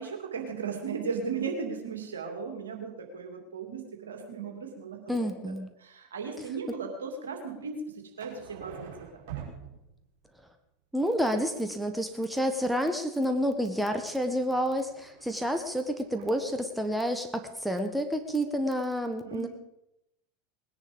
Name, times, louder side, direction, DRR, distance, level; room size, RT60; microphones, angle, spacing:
voice 1, 0.0-9.2 19.2-19.5, right 5 dB, 75° right, 3 dB, 2.7 m, -36 dB
voice 2, 5.1-5.7 10.9-19.5, equal, 5° right, 6 dB, 1.5 m, -29 dB
sound 1, 8.2-10.3 13.2-16.4 18.3-18.4 18.6-18.7, right 8 dB, 55° right, 5.3 m, -47 dB
19.5 x 10.5 x 5.3 m, 0.85 s
figure-of-eight pair, 80°, 0 cm